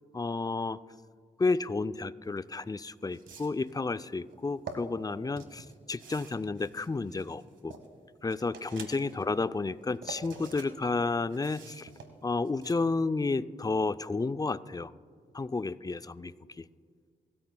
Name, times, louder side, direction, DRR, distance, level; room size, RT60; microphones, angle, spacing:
voice 1, 0.1-0.8 1.4-7.8 8.2-11.9 12.2-14.9 15.3-16.6, left 3 dB, 20° left, 13 dB, 0.5 m, -31 dB
sound 1, 2.4-2.5 3.1-3.7 4.3-4.8 5.4-7.9 8.3-9.2 9.6-10.7 11.0-12.7, right 5 dB, 80° right, 1.3 m, -47 dB
26.0 x 13.5 x 2.3 m, 2.1 s
cardioid pair, 45°, 19 cm